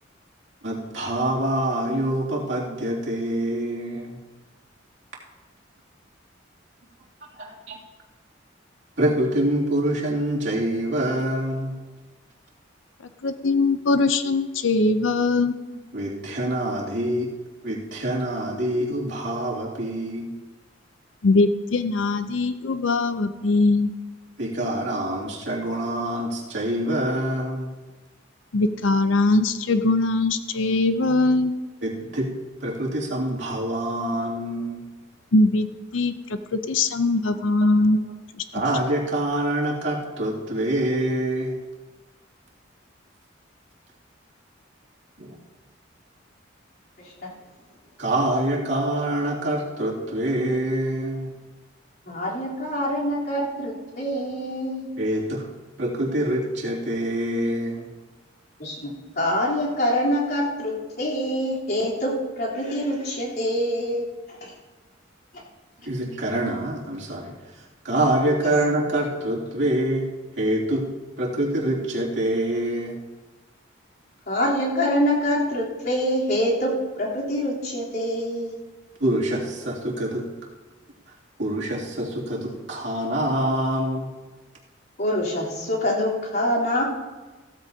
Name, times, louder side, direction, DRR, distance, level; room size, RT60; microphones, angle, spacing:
voice 1, 0.6-4.2 7.4-7.8 9.0-11.7 15.9-17.3 17.6-20.3 24.4-27.7 31.8-32.3 32.6-34.8 37.6-38.0 38.5-41.6 45.2-45.3 48.0-51.3 55.0-55.5 55.8-57.9 65.8-70.1 70.4-70.9 71.2-73.0 79.0-80.3 81.4-84.1, right 1 dB, 65° right, -4 dB, 2.7 m, -25 dB
voice 2, 13.2-15.5 21.2-23.9 28.5-31.5 35.3-35.7 35.9-36.4 36.7-38.0, left 2 dB, 75° left, 10 dB, 0.6 m, -21 dB
voice 3, 47.0-47.4 52.1-54.9 58.6-64.5 65.3-65.4 68.4-68.5 74.3-78.6 85.0-86.8, equal, 50° left, -5 dB, 3.5 m, -25 dB
16.0 x 13.5 x 2.8 m, 1.2 s
head